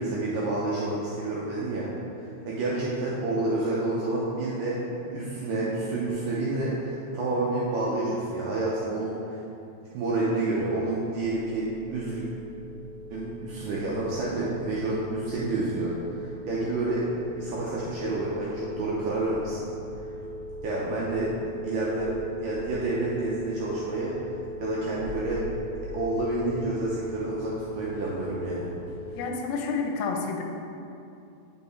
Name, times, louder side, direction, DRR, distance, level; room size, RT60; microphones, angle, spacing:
voice 1, 0.0-1.9 2.2-4.8 5.1-9.4 9.9-12.3 13.1-17.1 17.4-19.7 20.6-21.3 21.6-22.1 22.4-24.1 24.6-25.4 25.9-28.7, right 2 dB, 80° right, -6 dB, 2.0 m, -29 dB
sound 1, 11.2-29.2, equal, 70° left, 2.6 m, -40 dB
Insect, 19.7-21.4 21.9-23.3 25.0-26.7, equal, 50° left, 1.6 m, -43 dB
voice 2, 29.2-30.4, left 4 dB, 90° left, 2 dB, 2.8 m, -29 dB
9.2 x 5.5 x 3.2 m, 2.7 s
omnidirectional pair, 4.7 m